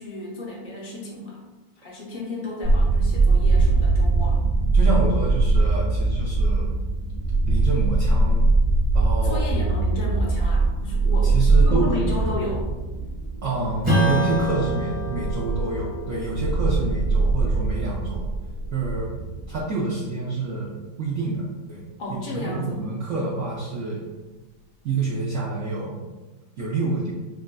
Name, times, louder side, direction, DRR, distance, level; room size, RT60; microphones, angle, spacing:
voice 1, 0.0-1.4 1.8-4.4 9.2-11.4 11.6-12.7 22.0-23.2, left 2 dB, 70° left, -4 dB, 0.4 m, -33 dB
sound 1, 2.6-19.6, right 3 dB, 35° right, 0.5 m, -22 dB
voice 2, 4.7-6.7 7.4-8.5 8.9-9.5 11.2-12.0 13.4-18.3 18.7-21.8 22.1-24.1 24.8-26.0 26.6-27.1, right 3 dB, 70° right, -5 dB, 0.7 m, -28 dB
Strum, 13.8-18.8, equal, 5° right, 0.8 m, -28 dB
6.1 x 2.5 x 2.2 m, 1.2 s
omnidirectional pair, 2.1 m